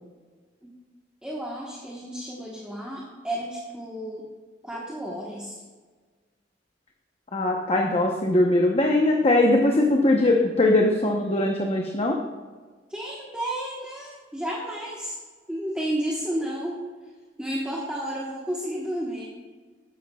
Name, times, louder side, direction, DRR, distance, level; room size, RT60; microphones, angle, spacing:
voice 1, 1.2-4.3 4.6-5.6 12.9-15.2 15.5-16.8 17.4-19.3, right 1 dB, 5° right, -4 dB, 1.2 m, -32 dB
voice 2, 7.3-12.2, left 2 dB, 35° left, 1 dB, 0.8 m, -21 dB
12.5 x 9.5 x 2.3 m, 1.4 s
head